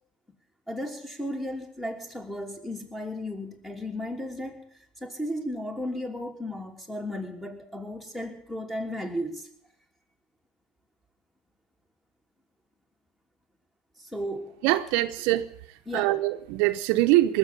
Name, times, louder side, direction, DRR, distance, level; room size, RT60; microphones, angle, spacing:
voice 1, 0.7-4.6 5.0-9.5 14.0-14.5 15.9-16.1, equal, 5° left, 3.1 m, -34 dB
voice 2, 14.6-15.5 15.9-17.4, right 16 dB, 70° right, 0.9 m, -23 dB
19.5 x 7.4 x 9.8 m
supercardioid pair, 100°, 3 cm